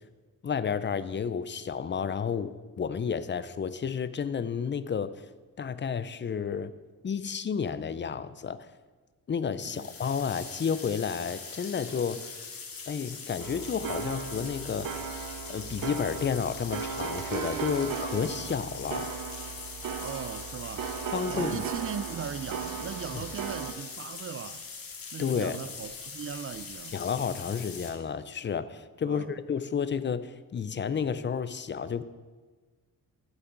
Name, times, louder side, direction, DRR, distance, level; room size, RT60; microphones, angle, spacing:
voice 1, 0.4-5.1 5.6-6.7 7.0-8.7 9.3-12.2 12.9-15.0 15.5-19.1 21.1-21.6 23.1-23.2 25.2-25.6 26.9-32.0, left 6 dB, 30° left, 0.5 m, -31 dB
sound 1, 9.6-27.9, left 5 dB, 75° left, 2.0 m, -42 dB
sound 2, 13.4-23.7, right 7 dB, 70° right, 0.8 m, -37 dB
voice 2, 20.0-20.9 21.3-24.7 25.1-27.0 29.1-29.3, right 7 dB, 40° right, 0.4 m, -39 dB
12.0 x 8.1 x 3.9 m
cardioid pair, 75°, 35 cm